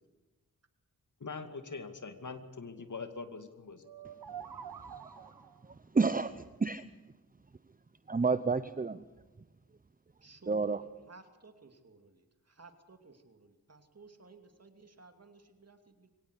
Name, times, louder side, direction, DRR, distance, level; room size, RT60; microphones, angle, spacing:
voice 1, 1.2-3.9, left 4 dB, 55° left, 8 dB, 2.4 m, -43 dB
sound 1, 3.8-5.7, right 8 dB, 90° right, 1.4 m, -46 dB
voice 2, 4.4-5.3 5.6-6.3 6.6-6.8 8.1-9.0 10.5-10.8, right 4 dB, 25° right, 12 dB, 0.8 m, -31 dB
voice 3, 10.2-16.1, right 4 dB, 45° right, 7 dB, 2.7 m, -56 dB
23.0 x 18.0 x 8.3 m, 1.2 s
wide cardioid pair, 65°, 35 cm